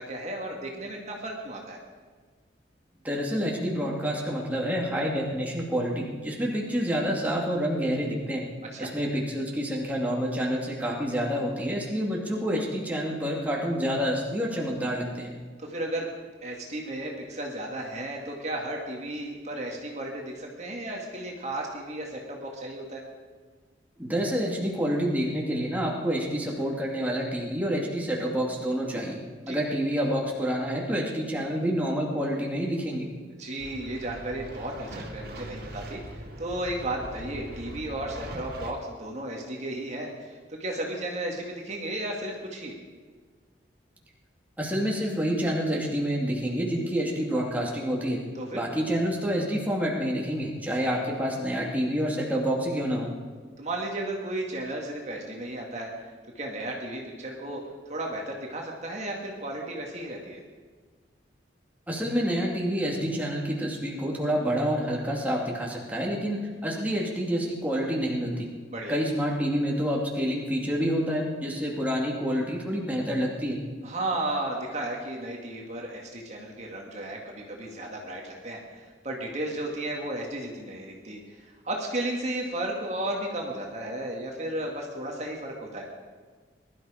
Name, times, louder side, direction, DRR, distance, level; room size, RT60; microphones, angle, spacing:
voice 1, 0.0-1.8 8.7-8.9 15.6-16.1 16.4-23.0 29.5-29.6 33.4-36.0 36.4-42.8 48.3-48.6 53.6-55.9 56.4-57.6 57.9-60.4 68.7-69.0 73.8-85.9, right 1 dB, 40° right, 0 dB, 2.1 m, -34 dB
voice 2, 3.0-8.4 8.8-15.3 24.0-29.2 29.5-33.1 44.6-48.2 48.5-53.1 61.9-68.5 68.9-73.6, equal, 10° right, -2 dB, 2.5 m, -28 dB
sound 1, 33.6-38.7, right 1 dB, 55° right, 2.3 m, -41 dB
21.0 x 12.5 x 5.1 m, 1.5 s
head